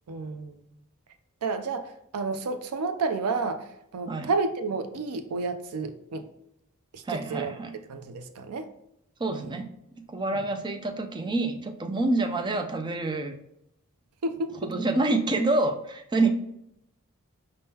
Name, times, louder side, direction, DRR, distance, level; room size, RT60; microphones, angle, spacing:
voice 1, 0.1-0.6 1.4-3.6 3.9-6.3 6.9-7.5 7.9-8.7 9.3-9.6 10.3-10.4 14.2-14.7, right 4 dB, 85° right, 8 dB, 0.5 m, -31 dB
voice 2, 7.1-7.7 9.2-9.7 10.1-13.3 14.6-16.3, right 2 dB, 20° right, 6 dB, 0.4 m, -27 dB
5.1 x 3.7 x 2.8 m, 0.80 s
head